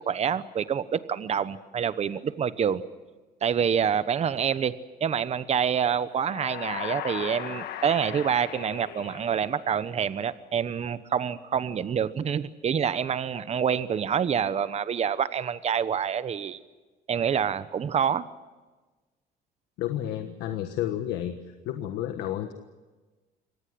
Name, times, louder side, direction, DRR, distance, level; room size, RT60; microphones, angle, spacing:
voice 1, 0.1-2.8 3.4-4.7 5.0-16.6 17.1-18.3, right 7 dB, 40° right, 14 dB, 1.1 m, -27 dB
sound 1, 6.2-10.0, left 11 dB, 70° left, 1.7 m, -37 dB
voice 2, 19.8-21.4 21.6-22.5, left 12 dB, 90° left, 7 dB, 1.5 m, -31 dB
25.0 x 19.0 x 7.9 m, 1.2 s
cardioid pair, 110°, 17 cm